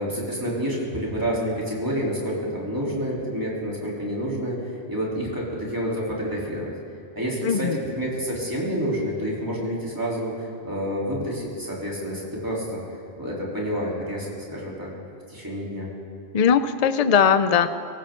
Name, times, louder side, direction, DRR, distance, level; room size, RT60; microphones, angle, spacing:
voice 1, 0.0-6.7 7.2-7.7 7.9-12.8 13.2-14.9 15.3-15.9, equal, 15° right, -5 dB, 3.5 m, -28 dB
voice 2, 7.4-7.8 16.3-17.7, left 7 dB, 45° left, 11 dB, 0.6 m, -19 dB
24.5 x 14.5 x 3.8 m, 2.5 s
omnidirectional pair, 1.1 m